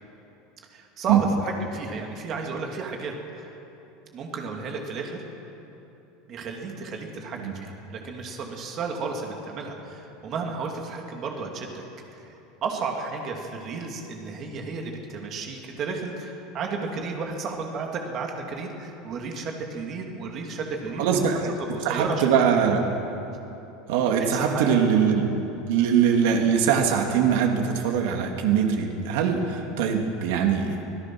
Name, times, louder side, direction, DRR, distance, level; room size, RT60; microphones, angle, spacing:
voice 1, 0.7-3.5 4.1-5.2 6.3-11.8 12.1-12.2 12.6-21.2 21.6-22.2 24.3-24.8, right 4 dB, 30° right, 2 dB, 2.6 m, -33 dB
voice 2, 21.0-21.5 21.8-22.9 23.9-25.3 25.7-30.7, right 7 dB, 70° right, 2 dB, 2.8 m, -22 dB
25.5 x 17.0 x 6.3 m, 3.0 s
supercardioid pair, 170°, 0 cm